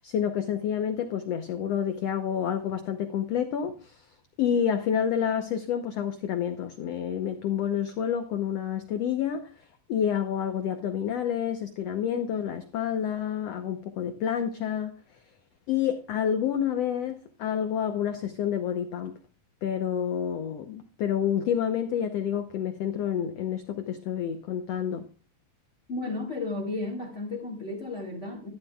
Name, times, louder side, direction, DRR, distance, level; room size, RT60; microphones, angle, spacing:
voice 1, 0.0-4.0 4.4-9.5 9.9-14.9 15.7-19.1 19.6-25.1, left 8 dB, 80° left, 1.4 m, -29 dB
voice 2, 25.9-28.5, left 2 dB, 25° left, 1.9 m, -33 dB
13.0 x 12.0 x 2.3 m
omnidirectional pair, 4.1 m